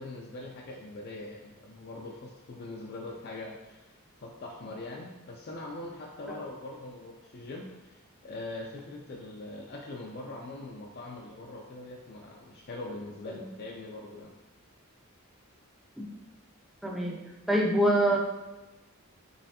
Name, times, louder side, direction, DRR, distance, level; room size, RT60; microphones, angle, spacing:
voice 1, 0.0-14.3, left 2 dB, 45° left, -1 dB, 0.5 m, -42 dB
voice 2, 16.8-17.2 17.5-18.2, right 1 dB, ahead, -2 dB, 0.5 m, -25 dB
5.4 x 3.2 x 2.8 m, 1.1 s
head